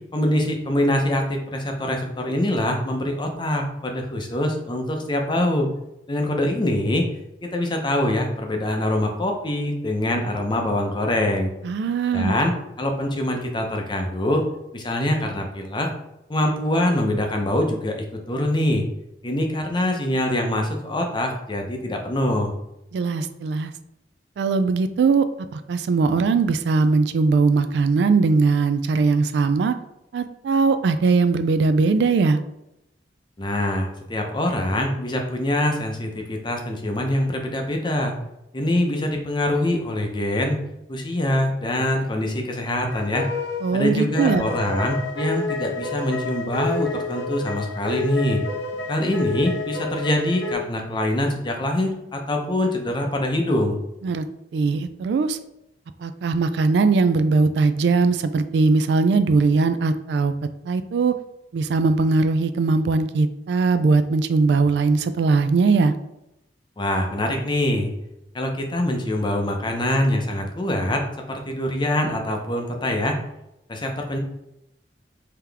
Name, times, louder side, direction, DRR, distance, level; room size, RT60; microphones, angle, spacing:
voice 1, 0.1-5.7 6.1-7.1 7.4-11.5 12.1-12.5 12.8-14.5 14.7-15.9 16.3-18.8 19.2-22.5 33.4-38.1 38.5-40.6 40.9-43.3 43.7-48.4 48.9-53.8 66.8-67.9 68.3-71.0 71.3-73.2 73.7-74.2, left 1 dB, 25° left, 3 dB, 0.6 m, -24 dB
voice 2, 11.6-12.3 22.9-23.7 24.4-25.3 25.5-29.7 30.1-32.4 43.6-44.5 54.0-54.3 54.5-55.4 56.0-60.3 60.7-61.1 61.5-65.9, right 4 dB, 70° right, 11 dB, 0.3 m, -20 dB
sound 1, 42.9-50.5, left 2 dB, 75° left, 0.8 m, -30 dB
3.8 x 2.9 x 3.4 m, 0.86 s
head